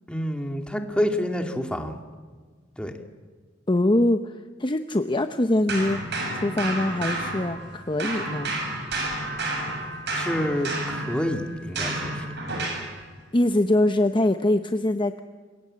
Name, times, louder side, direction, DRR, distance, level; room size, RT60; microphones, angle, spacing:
voice 1, 0.1-2.0 2.8-2.9 10.1-12.2, equal, 5° left, 4 dB, 2.3 m, -28 dB
voice 2, 3.7-6.0 6.3-8.5 13.3-15.2, left 1 dB, 25° left, 8 dB, 0.8 m, -23 dB
sound 1, 5.7-7.7 8.0-12.9, right 2 dB, 60° right, 7.5 m, -30 dB
28.0 x 23.0 x 8.7 m, 1.5 s
head